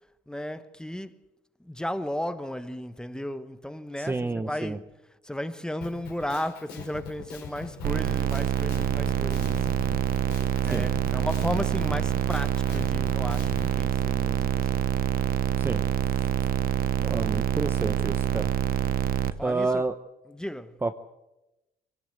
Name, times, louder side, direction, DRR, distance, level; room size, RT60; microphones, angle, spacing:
voice 1, 0.3-1.1 1.6-4.9 5.2-9.7 10.6-14.8 19.4-19.8 20.3-20.8, left 1 dB, 5° left, 1.2 m, -34 dB
voice 2, 4.0-4.8 10.6-10.9 15.6-15.8 16.1-16.2 17.0-18.5 19.4-19.9 20.8-20.9, right 3 dB, 15° right, 0.8 m, -29 dB
Drum kit, 5.8-13.7, left 6 dB, 80° left, 5.5 m, -41 dB
sound 1, 7.8-19.3, right 11 dB, 60° right, 1.0 m, -26 dB
24.0 x 18.0 x 8.0 m
cardioid pair, 110°, 17 cm